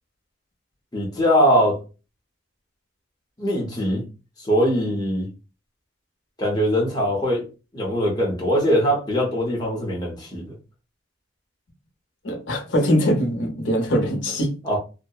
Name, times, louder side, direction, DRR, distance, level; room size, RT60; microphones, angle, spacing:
voice 1, 0.9-1.8 3.4-4.0 4.4-5.3 6.4-7.5 7.7-10.6 14.6-14.8, equal, 20° left, 0.7 m, -21 dB
voice 2, 12.2-14.5, equal, 75° left, 0.7 m, -22 dB
2.7 x 2.0 x 2.3 m
head